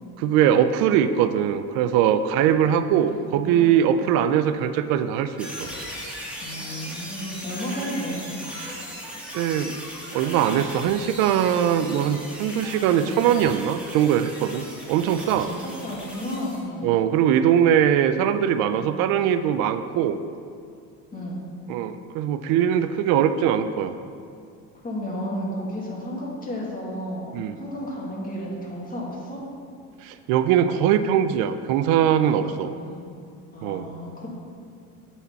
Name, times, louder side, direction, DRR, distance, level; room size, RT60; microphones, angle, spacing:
voice 1, 0.2-5.7 8.6-8.7 9.3-9.8 10.1-15.5 16.8-20.2 21.7-23.9 27.3-27.5 30.0-32.7 33.6-33.9, right 9 dB, 80° right, 11 dB, 0.5 m, -21 dB
voice 2, 2.3-2.8 3.1-4.1 6.4-8.3 12.9-13.2 15.2-17.0 18.7-19.0 21.1-21.4 24.8-29.4 32.2-33.0 33.5-34.3, equal, 25° left, -4 dB, 1.9 m, -33 dB
sound 1, 5.4-16.6, equal, 5° right, 1.6 m, -38 dB
8.4 x 4.2 x 5.7 m, 2.3 s
cardioid pair, 125°, 34 cm